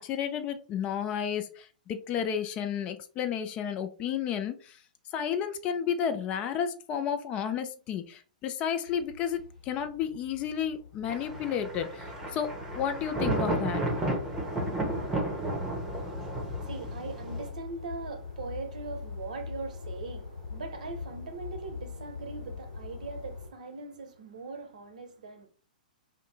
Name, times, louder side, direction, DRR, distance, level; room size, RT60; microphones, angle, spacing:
voice 1, 0.0-4.8 5.1-13.8, left 8 dB, 25° left, 0.3 m, -32 dB
sound 1, 8.9-23.5, left 5 dB, 60° left, 1.7 m, -42 dB
Thunder, 11.1-17.5, right 2 dB, 10° right, 0.9 m, -33 dB
voice 2, 15.7-25.5, right 4 dB, 60° right, 0.6 m, -41 dB
2.6 x 2.6 x 3.3 m
figure-of-eight pair, 110°, 5 cm